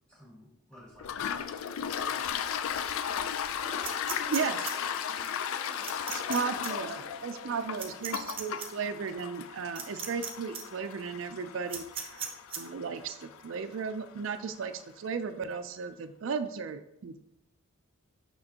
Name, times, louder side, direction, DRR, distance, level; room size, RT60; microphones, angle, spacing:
voice 1, 0.1-1.4 1.8-2.5, equal, 5° left, -5 dB, 2.5 m, -54 dB
Toilet flush, 1.0-14.4, left 8 dB, 75° left, 0.3 m, -36 dB
voice 2, 3.6-8.2, left 1 dB, 45° left, -5 dB, 2.4 m, -50 dB
sound 1, 3.8-4.7 5.8-6.4 6.6-6.7 7.8-8.7 9.8-10.3 10.5-10.6 11.7-12.6, right 7 dB, 25° right, 0.8 m, -37 dB
voice 3, 6.3-12.3 12.6-17.2, right 5 dB, 65° right, 10 dB, 0.4 m, -35 dB
6.5 x 6.2 x 2.8 m, 0.82 s
head